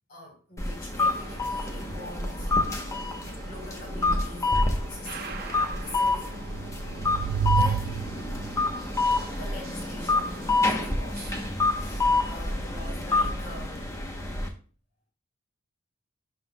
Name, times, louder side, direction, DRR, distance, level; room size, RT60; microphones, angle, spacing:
voice 1, 0.1-2.5 3.4-6.3 7.5-8.2 9.1-11.3 11.8-13.9, left 1 dB, 45° left, 4.4 m, -43 dB
sound 1, 0.6-14.5, left 2 dB, 15° left, 1.0 m, -28 dB
sound 2, 1.0-11.5, right 3 dB, 45° right, 0.8 m, -44 dB
sound 3, 6.4-8.7, right 8 dB, 75° right, 0.3 m, -29 dB
12.0 x 5.7 x 2.3 m
head